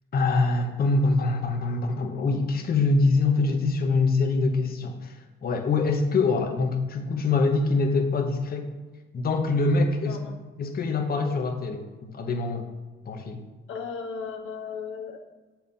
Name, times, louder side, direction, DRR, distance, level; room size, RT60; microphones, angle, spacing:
voice 1, 0.1-8.7 9.1-10.2 10.6-12.7 13.0-13.4, left 3 dB, 50° left, 4 dB, 1.0 m, -24 dB
voice 2, 10.0-10.4 13.7-15.2, left 5 dB, 80° left, 2 dB, 0.9 m, -35 dB
7.2 x 4.5 x 5.4 m, 1.3 s
cardioid pair, 90°, 20 cm